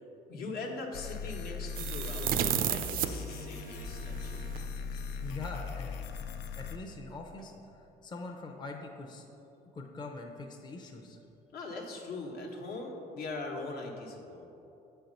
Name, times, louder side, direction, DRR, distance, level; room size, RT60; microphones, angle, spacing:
voice 1, 0.3-4.5 11.5-14.4, left 3 dB, 70° left, 1 dB, 1.2 m, -41 dB
sound 1, 0.9-6.8, left 5 dB, 90° left, 0.5 m, -39 dB
sound 2, 1.8-4.7, right 9 dB, 60° right, 0.4 m, -33 dB
voice 2, 5.2-9.3 9.7-11.2, left 3 dB, 25° left, 2 dB, 0.6 m, -43 dB
7.3 x 4.5 x 5.3 m, 2.9 s
cardioid pair, 110°, 17 cm